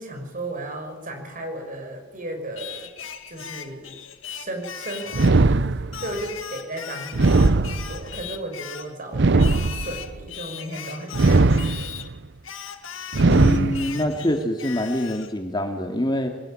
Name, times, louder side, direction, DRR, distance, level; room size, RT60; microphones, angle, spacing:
voice 1, 0.0-2.9 3.3-5.4 6.0-11.8, right 1 dB, 45° right, 5 dB, 6.2 m, -35 dB
Singing, 2.6-5.4 5.9-8.9 9.4-12.1 12.4-15.3, left 8 dB, 80° left, 1.9 m, -38 dB
sound 1, 5.1-6.2 7.1-8.2 9.1-10.2 11.1-12.2 13.1-14.2, right 3 dB, 60° right, 0.8 m, -19 dB
voice 2, 13.2-16.4, left 1 dB, 25° left, 4 dB, 2.4 m, -25 dB
23.5 x 20.0 x 9.0 m, 1.1 s
head